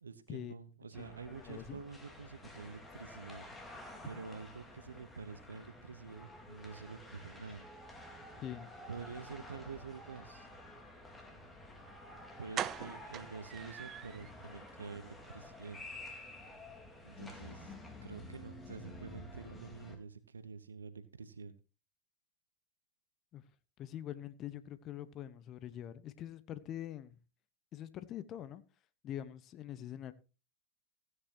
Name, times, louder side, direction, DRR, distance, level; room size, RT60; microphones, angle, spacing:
voice 1, 0.0-3.4 4.1-7.7 8.9-10.5 12.4-15.8 17.0-17.7 18.0-21.5, right 5 dB, 85° right, 1.0 m, -48 dB
sound 1, 0.9-20.0, left 1 dB, 15° left, 4.1 m, -51 dB
voice 2, 1.0-1.8 8.4-8.7 23.3-23.4 23.8-27.2 27.7-28.6 29.0-30.1, left 11 dB, 40° left, 1.1 m, -44 dB
sound 2, 11.9-12.0 12.5-14.3 14.7-14.8 15.1-15.3 15.6-15.7, right 11 dB, 40° right, 0.7 m, -41 dB
16.0 x 9.7 x 2.9 m
hypercardioid pair, 85°, 0 cm